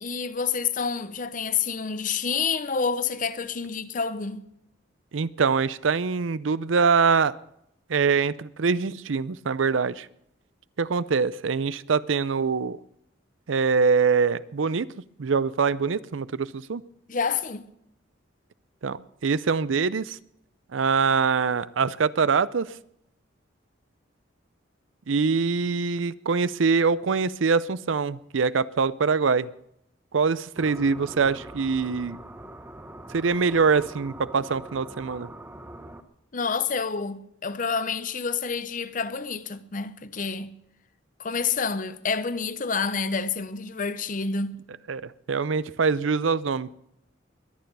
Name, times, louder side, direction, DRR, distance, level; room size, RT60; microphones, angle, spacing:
voice 1, 0.0-4.5 17.1-17.7 36.3-40.5 41.2-44.5, left 5 dB, 45° left, 0.7 m, -28 dB
voice 2, 5.1-7.3 7.9-10.1 10.8-12.8 13.5-14.9 15.2-16.8 18.8-20.2 20.7-22.8 25.1-29.5 30.1-32.2 33.1-35.3 44.9-46.8, right 5 dB, 85° right, 0.6 m, -24 dB
sound 1, 30.6-36.0, right 1 dB, 10° right, 0.9 m, -43 dB
22.0 x 9.3 x 5.4 m
head